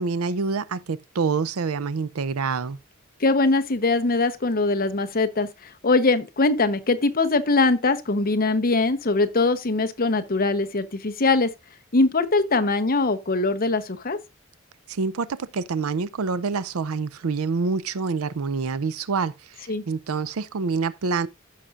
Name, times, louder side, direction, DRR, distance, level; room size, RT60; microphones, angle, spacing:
voice 1, 0.0-2.8 14.9-21.3, right 4 dB, 85° right, 0.6 m, -27 dB
voice 2, 3.2-11.5 11.9-14.2 19.7-19.8, left 3 dB, 45° left, 0.9 m, -22 dB
15.0 x 5.8 x 2.5 m
head